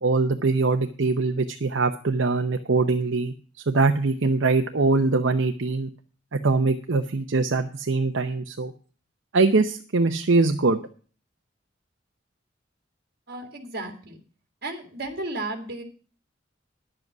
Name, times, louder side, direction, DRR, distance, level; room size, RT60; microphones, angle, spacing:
voice 1, 0.0-3.3 3.7-5.9 6.3-8.7 9.3-10.8, right 3 dB, 70° right, 6 dB, 0.7 m, -22 dB
voice 2, 13.3-14.2 14.6-15.8, right 2 dB, 55° right, 5 dB, 2.2 m, -34 dB
11.0 x 7.7 x 6.0 m, 0.40 s
head